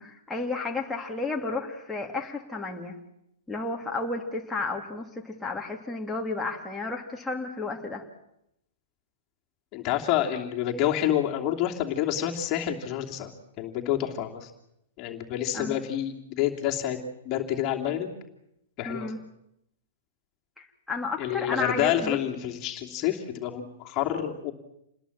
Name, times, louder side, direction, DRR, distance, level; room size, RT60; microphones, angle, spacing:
voice 1, 0.0-3.0 3.5-8.0 15.5-15.8 18.9-19.2 20.6-22.2, left 3 dB, 5° left, -1 dB, 2.9 m, -32 dB
voice 2, 9.7-13.3 13.6-14.5 15.0-18.1 18.8-19.1 21.2-24.5, left 11 dB, 35° left, 1 dB, 2.9 m, -28 dB
28.5 x 20.5 x 7.5 m, 0.80 s
figure-of-eight pair, 110°, 0 cm